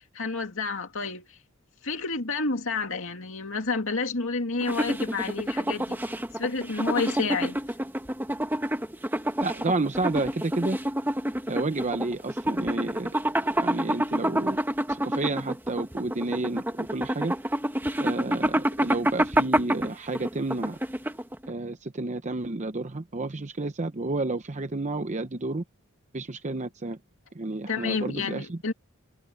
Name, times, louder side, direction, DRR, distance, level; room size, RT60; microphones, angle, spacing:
voice 1, 0.0-1.4 1.8-7.6 27.7-28.7, left 4 dB, 65° left, 2.5 m, -30 dB
sound 1, 4.6-21.5, right 1 dB, 10° right, 1.3 m, -28 dB
voice 2, 9.4-10.8 11.5-13.1 13.5-14.6 14.9-17.3 18.0-20.8 21.5-25.6 26.1-27.0 27.3-28.6, right 2 dB, 35° right, 0.8 m, -30 dB
head